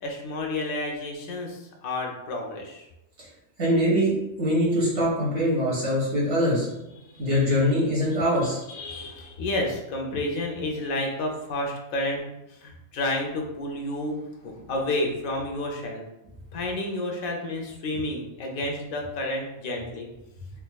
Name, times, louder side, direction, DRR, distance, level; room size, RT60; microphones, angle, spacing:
voice 1, 0.0-2.9 6.9-7.3 8.7-16.0 16.5-20.1, left 1 dB, 80° left, 1 dB, 1.1 m, -30 dB
voice 2, 3.6-6.7 7.2-8.6, equal, 55° right, -7 dB, 1.7 m, -23 dB
4.5 x 2.6 x 2.2 m, 0.92 s
omnidirectional pair, 1.5 m